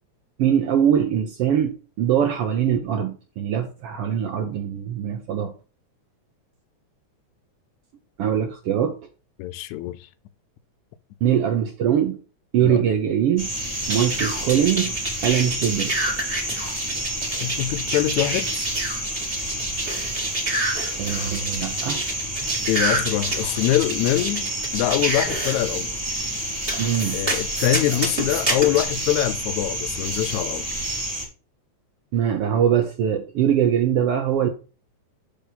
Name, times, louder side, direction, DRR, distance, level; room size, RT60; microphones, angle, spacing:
voice 1, 0.4-5.5 8.2-9.0 11.2-12.2 12.5-13.5 13.9-16.0 21.0-22.0 26.8-27.2 32.1-34.5, right 9 dB, 70° right, 1.5 m, -22 dB
voice 2, 9.4-10.1 12.6-12.8 17.4-18.7 22.7-25.9 27.1-30.7, left 14 dB, 80° left, 1.9 m, -24 dB
sound 1, 13.4-31.3, right 1 dB, 5° right, 1.3 m, -29 dB
sound 2, 13.9-25.5 26.7-28.8, right 2 dB, 25° right, 1.7 m, -27 dB
6.9 x 6.0 x 4.0 m
omnidirectional pair, 3.4 m